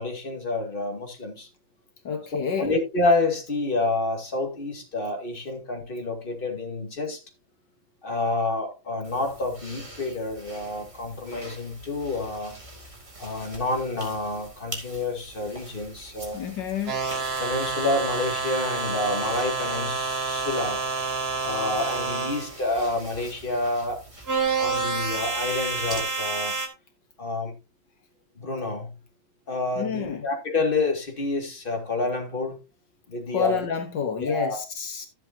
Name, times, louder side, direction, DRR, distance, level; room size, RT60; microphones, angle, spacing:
voice 1, 0.0-1.5 2.6-7.2 8.0-12.5 13.2-16.4 17.4-20.8 21.4-24.0 24.6-26.6 27.2-27.5 28.4-28.9 29.5-32.6 33.1-33.6 34.1-34.6, left 2 dB, 30° left, 2.4 m, -28 dB
voice 2, 2.1-2.7 16.3-17.0 29.8-30.3 33.3-35.1, left 7 dB, 75° left, 1.8 m, -29 dB
sound 1, 9.0-26.0, right 2 dB, 15° right, 2.9 m, -44 dB
sound 2, 16.9-22.5 24.3-26.7, right 4 dB, 55° right, 2.7 m, -28 dB
13.5 x 7.8 x 2.8 m
omnidirectional pair, 2.0 m